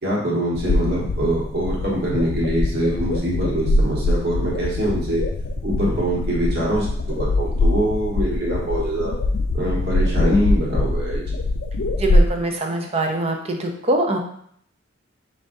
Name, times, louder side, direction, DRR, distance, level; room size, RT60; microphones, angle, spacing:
voice 1, 0.0-5.2 5.6-9.1 9.5-11.4, right 1 dB, 55° right, -5 dB, 1.5 m, -24 dB
sound 1, 0.5-12.3, left 2 dB, 65° left, 0.4 m, -22 dB
voice 2, 12.0-14.2, right 2 dB, 30° right, 2 dB, 0.6 m, -23 dB
5.0 x 3.3 x 2.6 m, 0.65 s
head